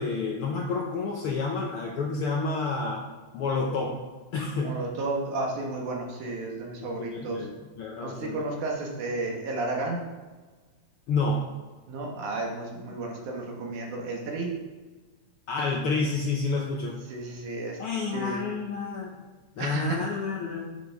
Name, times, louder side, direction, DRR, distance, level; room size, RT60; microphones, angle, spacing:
voice 1, 0.0-3.1 3.3-4.0 4.3-4.8 6.8-8.4 11.1-11.5 15.5-17.1 17.8-19.2 19.6-20.8, left 3 dB, 85° left, 0 dB, 1.2 m, -29 dB
voice 2, 4.5-7.5 8.0-10.0 11.9-14.6 17.1-17.8 18.1-18.4 19.6-20.0, right 2 dB, 75° right, 0 dB, 2.9 m, -32 dB
10.0 x 8.3 x 3.5 m, 1.3 s
omnidirectional pair, 3.5 m